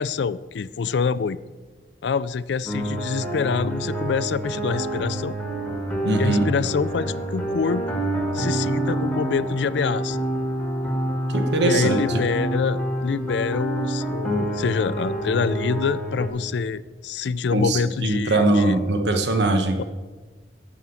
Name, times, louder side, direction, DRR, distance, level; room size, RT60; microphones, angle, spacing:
voice 1, 0.0-1.4 2.0-5.3 6.2-7.9 8.3-10.2 11.6-18.8, left 5 dB, 75° left, 17 dB, 0.4 m, -26 dB
sound 1, 2.7-16.3, right 1 dB, 10° left, 1.8 m, -27 dB
voice 2, 6.0-6.5 11.3-12.0 17.5-19.8, right 2 dB, 75° right, 5 dB, 1.2 m, -21 dB
15.5 x 6.0 x 7.0 m, 1.3 s
head